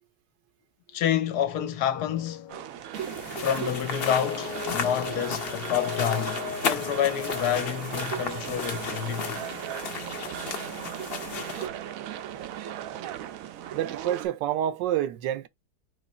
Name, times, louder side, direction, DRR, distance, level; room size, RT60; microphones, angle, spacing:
voice 1, 0.9-2.5 3.4-9.4, left 9 dB, 70° left, 1.2 m, -28 dB
sound 1, 1.9-2.7 3.0-3.3 4.0-9.4, left 11 dB, 90° left, 1.3 m, -38 dB
sound 2, 2.5-14.3, right 11 dB, 70° right, 0.8 m, -37 dB
sound 3, 2.9-11.7, left 6 dB, 50° left, 0.7 m, -35 dB
voice 2, 13.7-15.5, right 11 dB, 85° right, 1.3 m, -28 dB
4.0 x 3.1 x 4.1 m
omnidirectional pair, 1.9 m